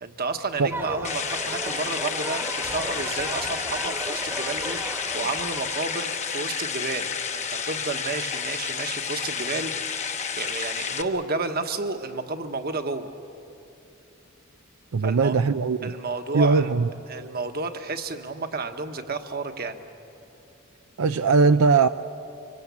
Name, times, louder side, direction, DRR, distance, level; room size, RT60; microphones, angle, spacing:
voice 1, 0.0-13.1 15.0-15.4 15.8-16.7 17.1-19.8, right 3 dB, 45° right, 7 dB, 1.3 m, -31 dB
sound 1, 0.7-6.6, right 1 dB, 15° right, 1.2 m, -36 dB
sound 2, 1.0-11.0, left 6 dB, 35° left, 1.0 m, -30 dB
voice 2, 14.9-15.9 16.3-16.9 21.0-21.9, right 4 dB, 80° right, 9 dB, 0.5 m, -20 dB
25.5 x 24.0 x 8.3 m, 2.8 s
head